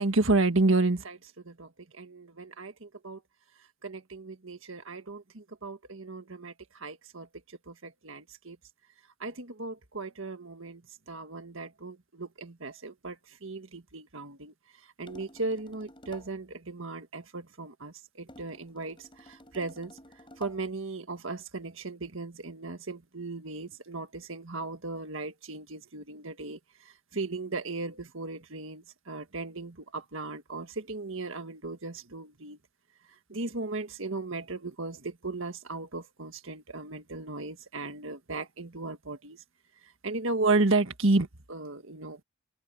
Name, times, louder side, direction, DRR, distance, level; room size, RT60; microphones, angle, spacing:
voice 1, 0.0-3.2 3.8-7.3 7.7-8.6 9.2-10.8 11.1-14.5 15.0-20.0 20.4-26.6 27.1-32.6 33.3-39.4 40.0-42.2, right 2 dB, 65° right, 1.7 m, -33 dB
sound 1, 15.1-16.4 18.3-20.7, left 1 dB, 25° left, 5.6 m, -51 dB
open air
head